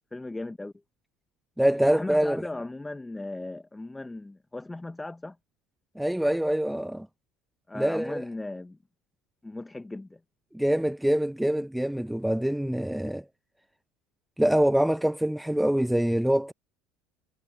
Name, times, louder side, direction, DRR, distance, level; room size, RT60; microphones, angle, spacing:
voice 1, 0.1-0.7 1.9-5.3 7.7-8.8 9.4-10.2, left 2 dB, 10° left, 1.4 m, -37 dB
voice 2, 1.6-2.5 6.0-7.1 7.7-8.2 10.5-13.2 14.4-16.5, right 1 dB, 5° right, 0.5 m, -25 dB
hypercardioid pair, 70°, 0 cm